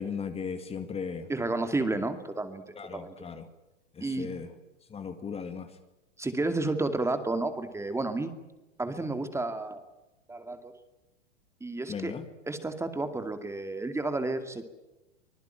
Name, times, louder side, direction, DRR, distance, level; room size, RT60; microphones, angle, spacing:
voice 1, 0.0-1.3 2.8-3.4 4.0-4.5 4.9-5.7 11.9-12.2, left 6 dB, 15° left, 8 dB, 2.1 m, -36 dB
voice 2, 1.3-2.6 2.9-3.1 4.0-4.3 6.2-8.3 8.8-9.8 10.3-10.7 11.6-12.1 12.5-14.7, right 2 dB, 5° right, 8 dB, 2.4 m, -31 dB
25.0 x 20.0 x 9.2 m, 0.99 s
hypercardioid pair, 120°, 36 cm